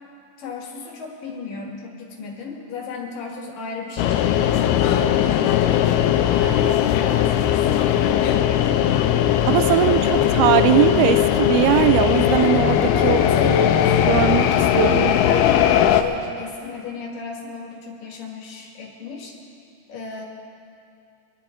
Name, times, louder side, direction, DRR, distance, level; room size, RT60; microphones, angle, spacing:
voice 1, 0.4-5.6 6.1-8.9 9.7-10.2 13.0-14.0 15.2-19.4 19.9-20.2, left 4 dB, 65° left, -1 dB, 3.2 m, -35 dB
sound 1, 4.0-16.0, left 10 dB, 90° left, 2.6 m, -19 dB
voice 2, 9.5-13.2 13.4-13.5 14.1-15.2, right 12 dB, 85° right, 11 dB, 2.5 m, -20 dB
26.0 x 10.5 x 4.4 m, 2.6 s
omnidirectional pair, 4.5 m